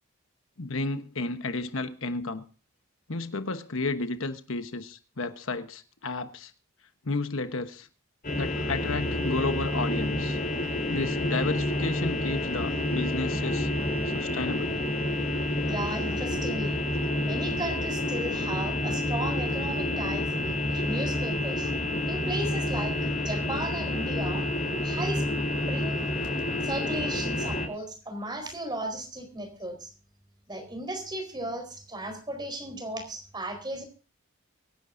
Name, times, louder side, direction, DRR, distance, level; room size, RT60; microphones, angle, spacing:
voice 1, 0.6-2.4 3.1-6.5 7.0-7.9 8.4-10.4 10.9-13.7 14.1-14.8, left 3 dB, 70° left, 1.2 m, -32 dB
sound 1, 8.2-27.7, left 1 dB, 45° left, 4.3 m, -29 dB
voice 2, 15.6-16.8 17.3-20.3 20.7-21.7 22.1-24.5 24.8-25.2 25.7-26.0 26.6-29.9 30.5-33.8, right 1 dB, 20° right, 4.4 m, -35 dB
24.5 x 11.0 x 2.7 m
head